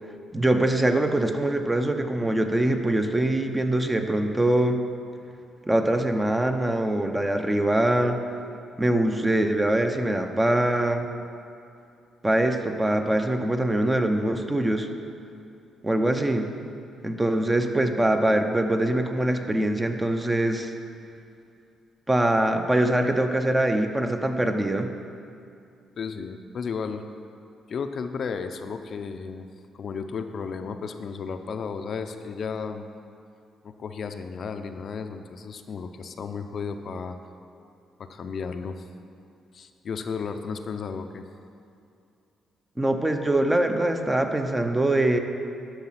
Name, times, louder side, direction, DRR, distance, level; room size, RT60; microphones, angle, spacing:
voice 1, 0.3-4.8 5.7-8.2 8.8-11.1 12.2-14.9 15.8-16.5 17.0-20.7 22.1-24.9 42.8-45.2, right 1 dB, 15° right, 6 dB, 0.8 m, -23 dB
voice 2, 26.0-27.0 27.7-29.5 29.7-32.9 33.6-37.2 38.0-38.9 39.5-41.3, left 5 dB, 55° left, 7 dB, 0.6 m, -33 dB
11.5 x 6.4 x 5.9 m, 2.5 s
cardioid pair, 90°, 0 cm